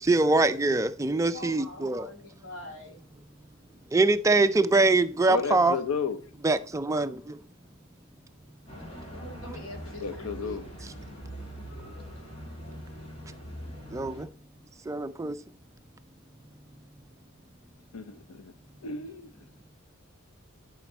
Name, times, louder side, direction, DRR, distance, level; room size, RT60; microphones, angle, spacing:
voice 1, 0.0-2.1 3.9-5.8 6.4-7.4 13.9-14.3 14.9-15.3, right 2 dB, 15° right, 0.4 m, -23 dB
voice 2, 1.3-3.0 9.0-10.6, left 1 dB, 70° left, 2.6 m, -44 dB
voice 3, 5.3-6.2 10.0-10.7 17.9-18.5 18.8-19.3, left 5 dB, 90° left, 0.7 m, -32 dB
sound 1, 8.7-14.2, equal, 30° left, 2.1 m, -42 dB
10.5 x 5.0 x 4.1 m
head